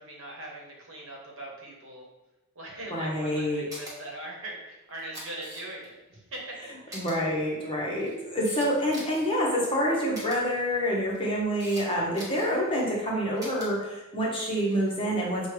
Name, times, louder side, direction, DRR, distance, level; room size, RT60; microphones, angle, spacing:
voice 1, 0.0-2.0 2.5-7.0, right 1 dB, 60° right, -2 dB, 1.1 m, -41 dB
voice 2, 2.9-3.7 6.9-15.5, equal, 25° left, -4 dB, 0.9 m, -27 dB
Camera, 3.7-3.9 4.9-5.9 6.3-6.4 6.9-7.1 7.8-9.3 10.1-10.4 11.1-11.8 12.1-12.5 13.4-13.7 14.5-14.8, equal, 15° right, 1.1 m, -42 dB
6.2 x 2.2 x 3.2 m, 1.0 s
head